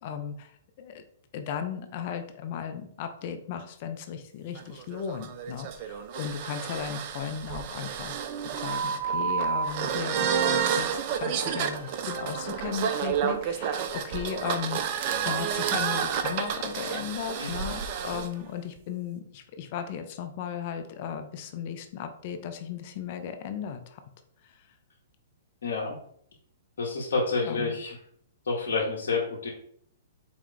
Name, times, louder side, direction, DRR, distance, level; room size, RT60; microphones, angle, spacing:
voice 1, 0.0-1.0 1.3-8.1 8.5-24.0 24.4-24.7 27.4-27.8, left 7 dB, 50° left, 7 dB, 0.5 m, -36 dB
sound 1, 4.5-18.3, right 7 dB, 45° right, 0.4 m, -30 dB
voice 2, 25.6-26.0 26.8-27.9 28.5-29.5, left 4 dB, 70° left, -3 dB, 0.8 m, -28 dB
4.3 x 2.3 x 3.7 m, 0.65 s
hypercardioid pair, 120°, 0 cm